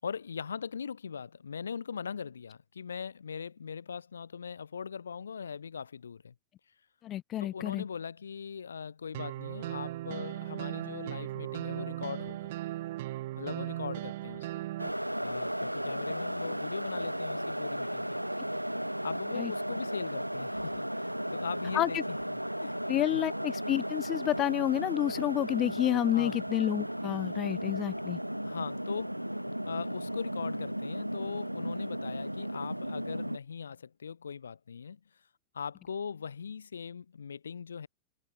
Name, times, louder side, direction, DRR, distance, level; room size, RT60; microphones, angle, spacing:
voice 1, 0.0-6.3 7.4-12.5 13.3-14.7 15.2-18.2 19.0-22.2 22.6-22.8 23.1-23.2 26.1-26.4 28.4-29.2 29.7-35.0 35.5-37.9, left 6 dB, 70° left, 6.2 m, -40 dB
voice 2, 7.0-7.8 19.4-19.5 21.7-22.0 22.9-28.2, left 13 dB, 30° left, 0.9 m, -29 dB
sound 1, 9.1-14.9, right 16 dB, 55° right, 0.7 m, -37 dB
sound 2, 14.8-33.4, equal, 90° right, 2.3 m, -35 dB
figure-of-eight pair, 90°, 0 cm